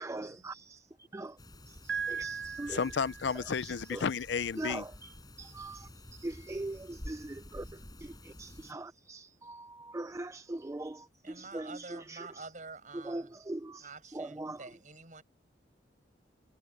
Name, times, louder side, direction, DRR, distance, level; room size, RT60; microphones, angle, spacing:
voice 1, 0.0-0.6 1.1-1.3 2.2-2.8 4.6-4.8 5.4-5.8 6.2-6.8 7.1-7.6 8.4-9.2 9.5-9.6 9.9-10.9 11.5-11.6 13.1-13.2 13.5-13.8 14.2-14.6, right 2 dB, 15° right, 0.4 m, -39 dB
sound 1, 1.4-8.7, left 1 dB, 20° left, 6.2 m, -50 dB
Piano, 1.9-3.8, right 6 dB, 75° right, 5.5 m, -38 dB
voice 2, 2.7-4.9, left 6 dB, 70° left, 0.5 m, -32 dB
voice 3, 11.2-13.4 13.8-15.2, right 4 dB, 45° right, 7.0 m, -48 dB
head